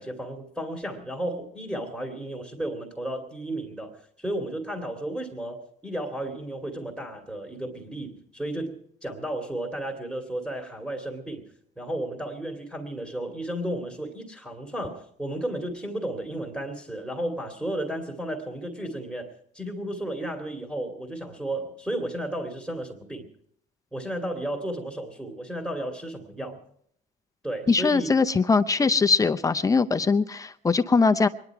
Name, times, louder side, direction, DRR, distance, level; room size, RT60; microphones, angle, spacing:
voice 1, 0.0-11.4 11.8-23.3 23.9-26.6 27.4-28.1, right 1 dB, 5° right, 0 dB, 2.5 m, -33 dB
voice 2, 27.7-31.3, left 4 dB, 20° left, 8 dB, 0.7 m, -21 dB
24.0 x 11.0 x 4.7 m, 0.66 s
cardioid pair, 110°, 17 cm